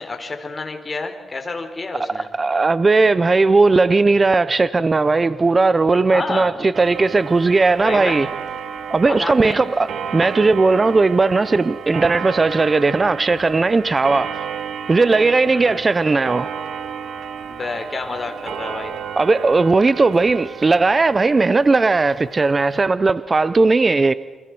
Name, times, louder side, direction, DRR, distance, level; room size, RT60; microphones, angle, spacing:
voice 1, 0.0-2.3 6.1-6.5 7.8-8.2 9.1-9.6 15.5-15.8 17.5-18.9, left 3 dB, 25° left, 4.1 m, -29 dB
voice 2, 2.4-8.3 8.9-14.4 14.9-16.5 19.2-24.1, right 3 dB, 30° right, 0.7 m, -17 dB
Clock, 6.7-22.9, right 7 dB, 80° right, 2.1 m, -32 dB
29.0 x 25.5 x 6.2 m
cardioid pair, 100°, 0 cm